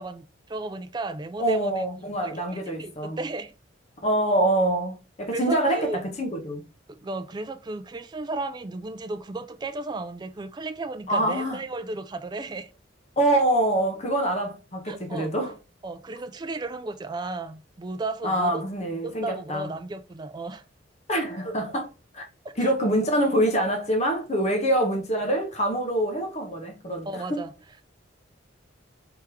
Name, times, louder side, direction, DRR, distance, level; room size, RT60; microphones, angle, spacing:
voice 1, 0.0-1.7 2.2-3.5 5.3-6.0 6.9-12.7 14.9-15.3 15.8-18.6 18.9-20.6 22.4-22.8 27.1-27.5, right 2 dB, 25° right, 0.4 m, -34 dB
voice 2, 1.4-3.2 4.0-6.7 11.1-11.6 13.2-15.5 18.2-19.7 21.1-22.3 22.6-27.4, right 1 dB, 35° left, 0.9 m, -25 dB
3.5 x 3.2 x 4.4 m
head